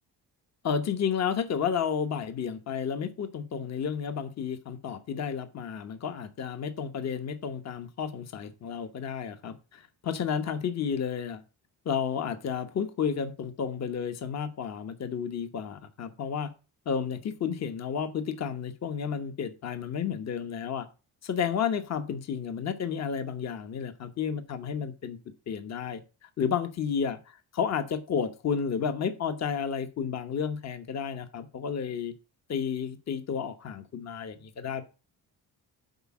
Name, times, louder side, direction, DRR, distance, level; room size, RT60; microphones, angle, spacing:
voice 1, 0.6-11.4 11.8-16.5 16.9-20.9 21.2-25.2 25.5-27.2 27.5-32.1 32.5-34.8, left 7 dB, 40° left, 1.0 m, -31 dB
8.0 x 5.0 x 7.1 m
cardioid pair, 155°, 39 cm